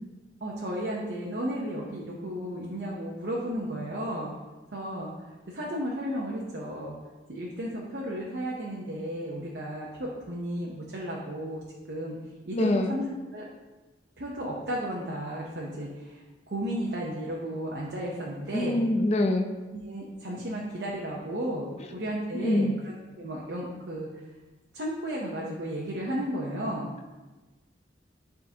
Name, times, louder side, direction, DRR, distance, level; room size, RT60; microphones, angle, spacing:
voice 1, 0.4-4.3 4.7-5.1 5.5-7.0 7.3-11.6 11.9-12.2 12.5-13.0 13.3-13.4 14.2-18.8 19.7-22.7 23.2-24.1 24.7-26.9, right 1 dB, 65° right, -3 dB, 0.8 m, -33 dB
voice 2, 12.5-12.9 18.5-19.5 22.3-22.8, left 1 dB, 35° left, 4 dB, 0.4 m, -25 dB
9.5 x 3.8 x 2.8 m, 1.2 s
head